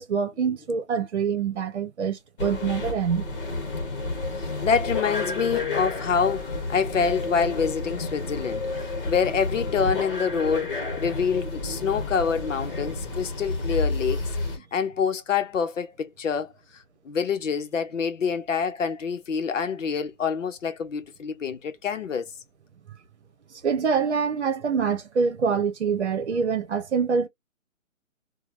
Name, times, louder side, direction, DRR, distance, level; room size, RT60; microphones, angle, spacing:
voice 1, 0.0-3.3 23.6-27.3, right 6 dB, 55° right, 1.0 m, -25 dB
sound 1, 2.4-14.6, left 3 dB, 40° left, 1.1 m, -30 dB
voice 2, 4.4-8.7 9.1-14.2 14.7-16.5 17.0-22.3, left 6 dB, 65° left, 0.8 m, -26 dB
3.0 x 2.3 x 2.5 m
hypercardioid pair, 165°, 41 cm